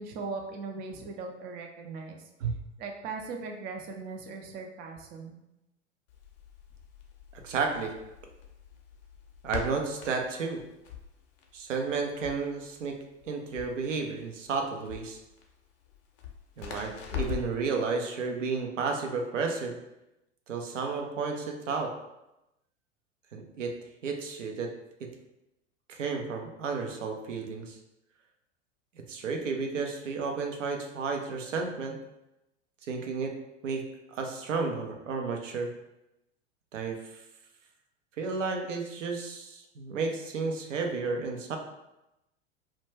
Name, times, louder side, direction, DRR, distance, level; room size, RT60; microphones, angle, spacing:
voice 1, 0.0-2.3 2.8-5.4, right 4 dB, 25° right, 2 dB, 0.4 m, -39 dB
Crackle, 6.1-17.6, left 9 dB, 50° left, 0.6 m, -42 dB
voice 2, 7.3-7.9 9.4-10.6 11.5-13.0 13.3-15.2 16.6-19.8 20.5-21.9 23.3-23.7 24.0-24.7 25.0-25.1 25.9-27.8 29.1-32.0 32.9-33.3 33.6-33.8 34.1-35.7 36.7-37.2 38.2-41.6, right 4 dB, 75° right, 3 dB, 0.6 m, -32 dB
2.2 x 2.1 x 3.2 m, 0.92 s
figure-of-eight pair, 90°, 37 cm